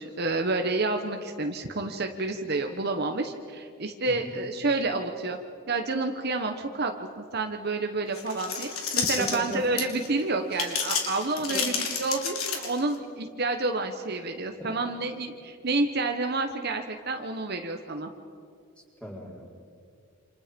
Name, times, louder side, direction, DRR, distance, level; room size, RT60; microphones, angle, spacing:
voice 1, 0.0-5.4 5.7-18.1, right 3 dB, 50° right, 5 dB, 1.2 m, -29 dB
voice 2, 4.0-4.4 9.2-9.6 11.5-11.6 14.6-14.8 19.0-19.5, equal, 5° left, -2 dB, 4.3 m, -36 dB
sound 1, 8.1-10.1 10.5-13.0, left 6 dB, 90° left, 3.7 m, -30 dB
28.5 x 27.5 x 5.3 m, 2.3 s
head